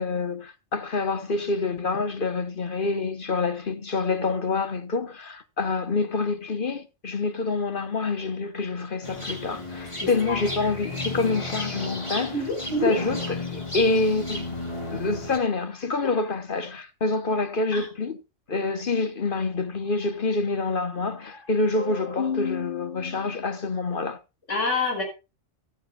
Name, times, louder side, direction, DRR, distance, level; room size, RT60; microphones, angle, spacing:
voice 1, 0.0-12.5 12.8-14.5 14.9-18.2 18.5-24.2, left 3 dB, 45° left, 1.1 m, -27 dB
sound 1, 9.0-15.4, left 2 dB, 25° left, 2.8 m, -33 dB
voice 2, 10.0-10.4 12.1-13.0 17.7-17.9 24.5-25.0, left 2 dB, 85° left, 5.2 m, -27 dB
14.5 x 14.0 x 2.3 m
omnidirectional pair, 1.3 m